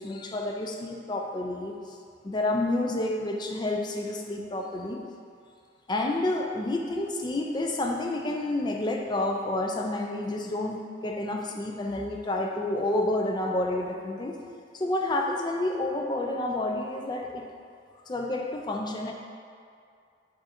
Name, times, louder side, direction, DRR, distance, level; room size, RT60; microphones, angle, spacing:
voice 1, 0.0-2.0 2.2-5.0 5.9-14.4 14.7-17.4 18.1-19.1, left 2 dB, 25° left, 1 dB, 0.3 m, -29 dB
4.8 x 2.5 x 4.2 m, 2.3 s
head